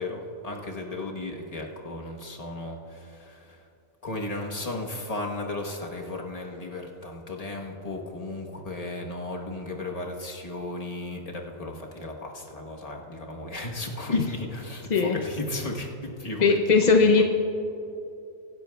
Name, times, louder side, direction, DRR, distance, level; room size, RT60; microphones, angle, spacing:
voice 1, 0.0-3.6 4.0-16.5 16.9-17.2, left 2 dB, 30° left, 0 dB, 1.1 m, -35 dB
voice 2, 16.4-17.2, left 4 dB, 55° left, 2 dB, 0.5 m, -19 dB
23.5 x 10.5 x 2.3 m, 2.9 s
omnidirectional pair, 1.5 m